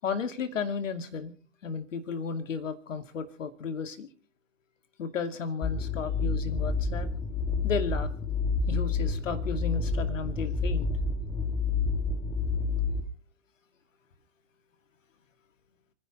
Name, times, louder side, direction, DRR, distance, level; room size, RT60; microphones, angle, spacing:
voice 1, 0.0-1.3 1.6-4.1 5.0-7.1 7.6-8.1 8.7-10.9, left 5 dB, 65° left, 9 dB, 2.4 m, -33 dB
sound 1, 5.6-13.0, left 4 dB, 15° left, 2.4 m, -29 dB
30.0 x 10.5 x 3.3 m, 0.39 s
figure-of-eight pair, 105°, 40 cm